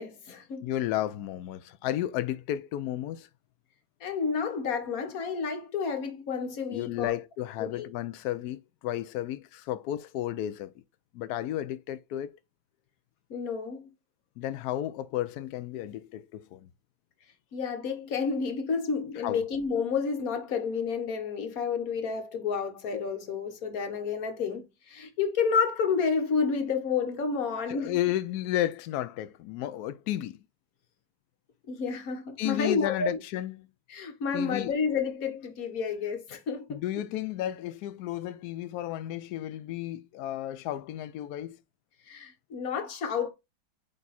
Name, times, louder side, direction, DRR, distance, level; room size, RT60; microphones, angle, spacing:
voice 1, 0.0-0.7 4.0-7.2 7.6-7.9 13.3-13.9 17.5-28.0 31.7-33.2 33.9-36.8 42.1-43.3, left 5 dB, 50° left, 1.5 m, -30 dB
voice 2, 0.6-3.3 6.7-10.7 11.1-12.3 14.4-16.7 19.1-19.5 27.7-30.4 32.4-33.7 34.3-34.7 36.7-41.6, left 13 dB, 85° left, 0.8 m, -33 dB
8.8 x 3.5 x 4.1 m
omnidirectional pair, 2.2 m